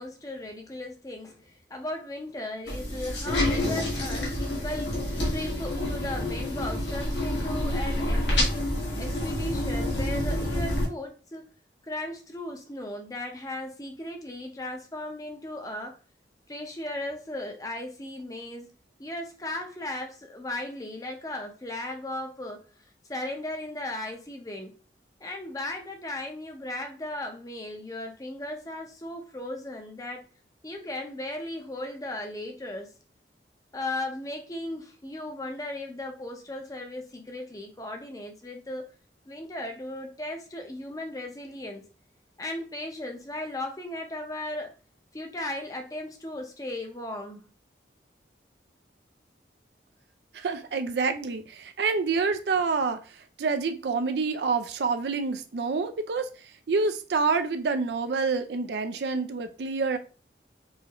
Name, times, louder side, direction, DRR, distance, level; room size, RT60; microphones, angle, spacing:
voice 1, 0.0-8.7 9.0-11.4 11.8-16.0 16.5-18.7 19.0-22.6 23.1-24.8 25.2-30.3 30.6-32.9 33.7-38.8 39.3-41.9 42.4-44.7 45.1-47.4, left 1 dB, 20° left, 3 dB, 0.6 m, -36 dB
sound 1, 2.7-10.9, left 1 dB, 85° left, 1.6 m, -28 dB
voice 2, 50.3-53.0 53.4-56.3 56.7-60.0, right 4 dB, 70° right, 9 dB, 0.4 m, -27 dB
4.7 x 2.5 x 2.9 m, 0.36 s
head